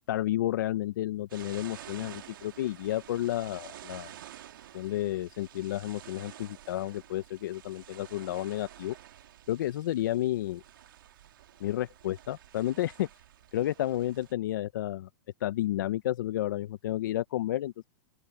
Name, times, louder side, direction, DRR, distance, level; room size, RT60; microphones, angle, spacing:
voice 1, 0.1-4.1 4.7-8.9 9.5-10.6 11.6-13.1 13.5-15.1 15.4-17.8, left 13 dB, 65° left, 0.7 m, -31 dB
sound 1, 1.3-14.3, right 12 dB, 80° right, 2.5 m, -50 dB
open air
supercardioid pair, 160°, 11 cm